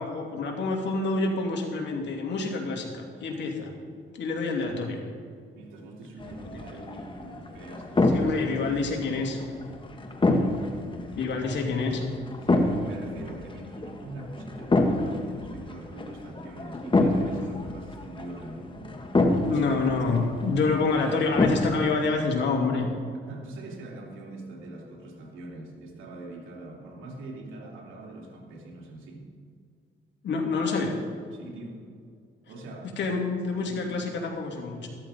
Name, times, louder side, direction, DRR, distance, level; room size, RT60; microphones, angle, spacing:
voice 1, 0.0-3.7 4.2-5.0 8.1-9.4 11.1-12.0 19.5-22.9 30.2-31.0 33.0-34.9, left 3 dB, 65° left, 1 dB, 2.6 m, -27 dB
voice 2, 5.5-8.3 8.7-8.8 9.0-9.3 10.2-10.5 12.4-19.2 19.5-19.7 20.5-20.7 21.0-21.2 23.3-29.3 31.3-31.8 32.5-33.0 33.7-34.0, right 2 dB, 85° right, -1 dB, 3.0 m, -43 dB
sound 1, 6.2-21.9, left 2 dB, 25° left, 1.6 m, -28 dB
14.0 x 13.0 x 4.3 m, 2.1 s
cardioid pair, 90°, 20 cm